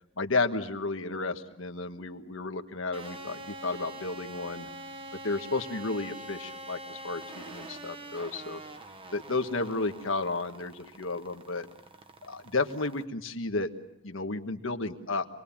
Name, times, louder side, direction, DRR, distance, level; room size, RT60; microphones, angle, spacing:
voice 1, 0.2-4.7 5.2-8.6 9.1-11.7 12.2-13.7 14.0-15.2, left 3 dB, 65° left, 7 dB, 1.5 m, -32 dB
sound 1, 2.9-13.0, right 1 dB, 25° right, 1.1 m, -45 dB
26.5 x 21.5 x 7.2 m, 0.89 s
head